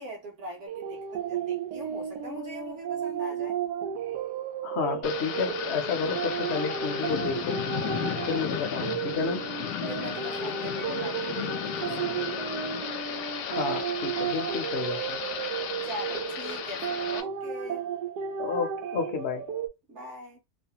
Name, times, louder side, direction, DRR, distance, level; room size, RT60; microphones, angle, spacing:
voice 1, 0.0-3.6 9.9-12.2 15.8-17.9 19.9-20.4, right 1 dB, 50° right, 1.1 m, -41 dB
sound 1, 0.7-19.7, right 8 dB, 85° right, 1.2 m, -33 dB
voice 2, 4.6-7.6 8.3-9.5 13.5-15.2 18.4-19.5, left 5 dB, 55° left, 0.7 m, -31 dB
Thunder / Rain, 5.0-17.2, left 8 dB, 85° left, 1.2 m, -34 dB
3.1 x 2.0 x 2.8 m
omnidirectional pair, 1.7 m